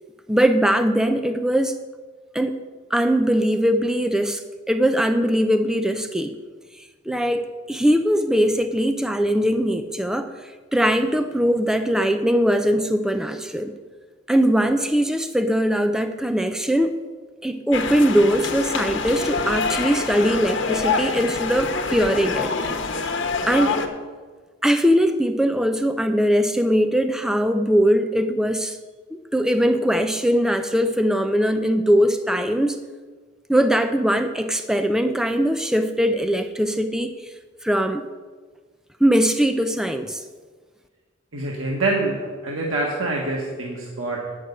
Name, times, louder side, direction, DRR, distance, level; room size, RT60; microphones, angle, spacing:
voice 1, 0.3-1.7 2.3-6.3 7.1-13.7 14.3-17.0 17.4-22.5 23.4-23.8 24.6-28.8 29.1-32.8 33.5-37.3 37.6-38.1 39.0-40.2, equal, 5° right, 8 dB, 0.4 m, -21 dB
sound 1, 17.7-23.9, left 4 dB, 65° left, 1.1 m, -26 dB
voice 2, 41.3-44.4, right 2 dB, 90° right, -2 dB, 1.5 m, -26 dB
8.6 x 6.4 x 8.0 m, 1.4 s
head